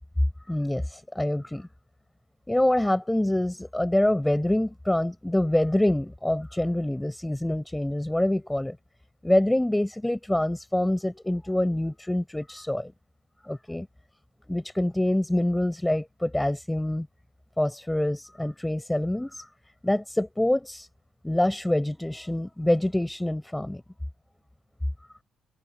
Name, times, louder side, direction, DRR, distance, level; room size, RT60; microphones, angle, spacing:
voice 1, 0.5-1.7 2.5-8.8 9.2-12.9 13.5-13.9 14.5-17.1 17.6-19.5 19.8-20.9 21.2-23.8, left 1 dB, 10° left, 6.1 m, -26 dB
cardioid pair, 90°, 0 cm